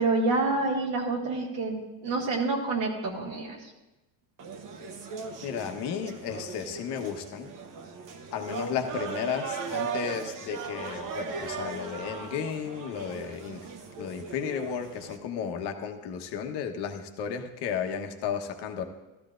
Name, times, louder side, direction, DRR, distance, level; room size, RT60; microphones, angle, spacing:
voice 1, 0.0-3.7, right 3 dB, 80° right, -4 dB, 2.1 m, -28 dB
sound 1, 4.4-15.2, right 5 dB, 50° right, 1.1 m, -38 dB
voice 2, 5.4-7.5 8.3-13.7 14.0-18.8, left 7 dB, 75° left, 4 dB, 1.2 m, -33 dB
14.5 x 13.0 x 2.5 m, 1.1 s
cardioid pair, 105°, 41 cm